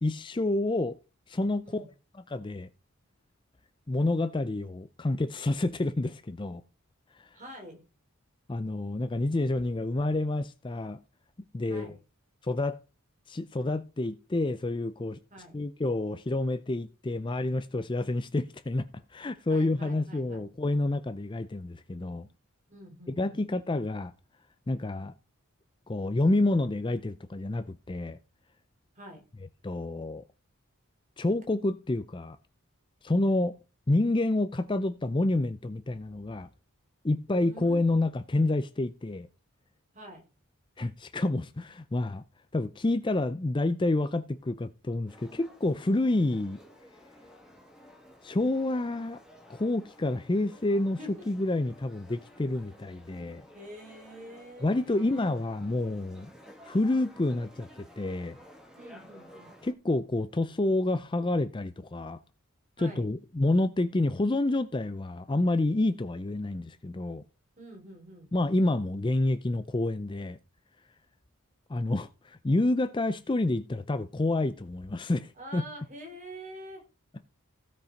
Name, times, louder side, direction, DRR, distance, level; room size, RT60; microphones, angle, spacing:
voice 1, 0.0-1.0 1.3-1.9 2.3-2.7 3.9-6.6 7.2-7.3 8.5-11.0 11.5-11.9 12.4-12.8 13.3-15.2 15.5-22.3 23.1-24.1 24.7-25.1 25.9-28.2 29.6-30.2 31.2-32.4 33.0-33.6 33.9-36.5 37.0-39.3 40.8-42.2 42.5-46.6 48.2-49.2 49.5-51.0 51.3-53.4 54.6-56.3 56.6-58.4 59.6-62.2 62.8-67.2 68.3-70.4 71.7-75.6, left 2 dB, 20° left, 0.5 m, -28 dB
voice 2, 7.3-7.8 11.7-12.0 15.3-15.6 19.5-20.5 22.7-23.4 28.9-29.3 37.3-37.8 39.9-40.3 51.0-51.3 53.5-55.3 58.7-59.5 62.8-63.1 67.6-68.3 75.4-76.9, right 1 dB, 35° right, 3.6 m, -46 dB
sound 1, 45.1-59.7, equal, 5° right, 2.0 m, -53 dB
16.0 x 5.4 x 5.1 m
head